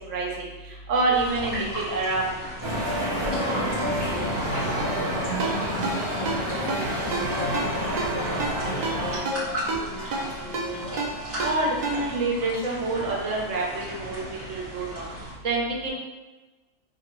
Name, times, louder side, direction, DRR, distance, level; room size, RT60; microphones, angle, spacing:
voice 1, 0.9-2.2 11.4-14.2 14.5-15.1 15.4-15.9, right 2 dB, 75° right, -2 dB, 1.0 m, -26 dB
sound 1, 1.1-15.3, equal, 10° right, 1.2 m, -37 dB
sound 2, 2.6-9.2, equal, 25° left, 1.3 m, -28 dB
voice 2, 3.3-11.1, left 3 dB, 75° left, -3 dB, 1.1 m, -38 dB
Ringtone, 5.4-12.3, right 3 dB, 90° right, 0.3 m, -32 dB
2.7 x 2.7 x 2.9 m, 1.2 s
omnidirectional pair, 1.3 m